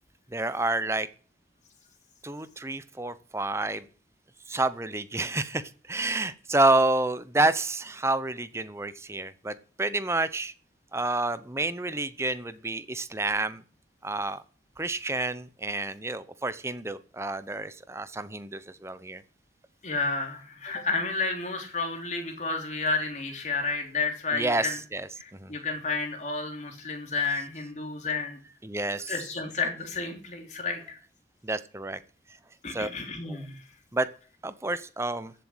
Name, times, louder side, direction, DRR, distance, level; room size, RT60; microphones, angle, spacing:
voice 1, 0.3-1.1 2.2-3.8 4.5-10.5 10.9-13.6 14.0-14.4 14.8-19.2 24.3-25.5 28.6-29.1 31.4-32.0 32.7-32.9 33.3-33.4 33.9-34.1 34.4-35.3, right 2 dB, 15° right, 14 dB, 0.8 m, -29 dB
voice 2, 19.8-24.8 25.2-28.4 29.1-31.0 32.6-33.6, left 3 dB, 45° left, 3 dB, 3.4 m, -31 dB
14.5 x 7.7 x 8.0 m, 0.40 s
head